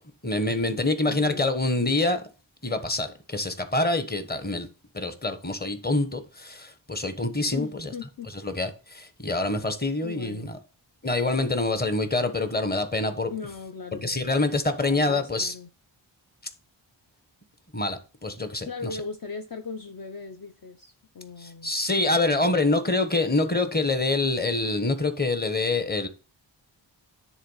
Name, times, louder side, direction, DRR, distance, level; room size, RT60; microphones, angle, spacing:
voice 1, 0.2-2.2 2.6-4.7 4.9-7.9 8.4-10.6 11.0-13.3 14.0-15.5 17.7-18.7 21.4-26.1, left 2 dB, 20° left, 1.2 m, -26 dB
voice 2, 1.0-1.5 7.5-8.3 10.0-10.5 13.3-14.3 14.9-15.7 18.6-21.7, left 5 dB, 45° left, 0.8 m, -38 dB
10.0 x 3.8 x 5.6 m
wide cardioid pair, 80°, 48 cm